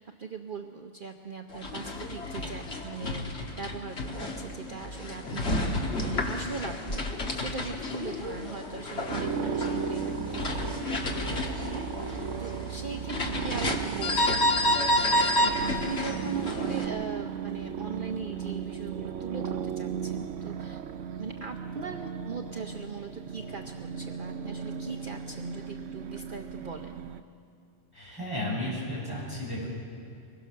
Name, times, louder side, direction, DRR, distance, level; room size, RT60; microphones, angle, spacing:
voice 1, 0.0-10.4 10.9-14.8 15.4-20.8 21.2-27.0, right 5 dB, 50° right, 3 dB, 1.0 m, -40 dB
sound 1, 1.5-16.9, left 1 dB, 60° left, 1.9 m, -30 dB
sound 2, 9.1-27.2, right 7 dB, 85° right, 1.1 m, -35 dB
voice 2, 27.9-29.7, left 1 dB, 20° left, -6 dB, 7.7 m, -33 dB
23.5 x 21.5 x 6.5 m, 2.4 s
omnidirectional pair, 1.2 m